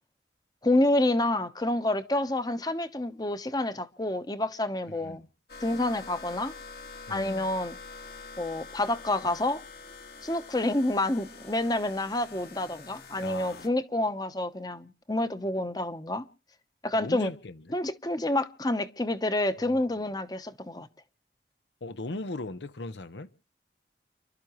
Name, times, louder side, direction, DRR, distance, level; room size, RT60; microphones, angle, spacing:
voice 1, 0.6-5.2 5.6-6.5 7.1-7.8 8.4-9.6 10.2-16.3 16.8-17.3 17.7-20.9, left 1 dB, 20° left, 0.9 m, -28 dB
voice 2, 4.9-5.3 7.1-7.5 13.2-13.7 16.9-17.7 19.6-19.9 21.8-23.3, left 2 dB, 85° left, 0.9 m, -39 dB
sound 1, 5.5-13.7, left 4 dB, 55° left, 2.1 m, -46 dB
29.5 x 12.0 x 3.1 m
head